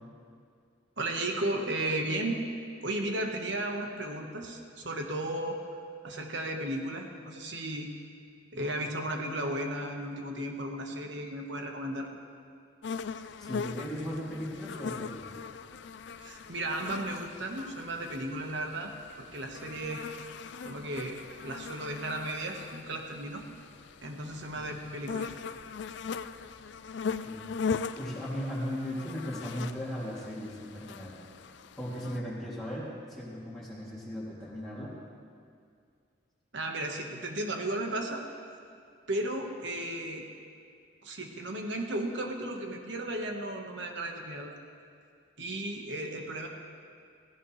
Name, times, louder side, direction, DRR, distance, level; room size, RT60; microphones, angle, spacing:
voice 1, 1.0-2.4 2.8-5.6 6.0-7.9 8.5-12.1 16.2-18.9 19.2-20.1 20.6-23.4 24.0-25.3 36.5-38.2 39.1-40.3 41.0-44.6 45.4-46.5, right 1 dB, 60° right, 2 dB, 1.3 m, -34 dB
sound 1, 12.8-32.2, left 5 dB, 60° left, 0.4 m, -40 dB
voice 2, 13.4-15.4 24.5-24.9 27.2-31.2 31.8-34.9, equal, ahead, -9 dB, 2.7 m, -37 dB
17.0 x 16.0 x 3.2 m, 2.3 s
head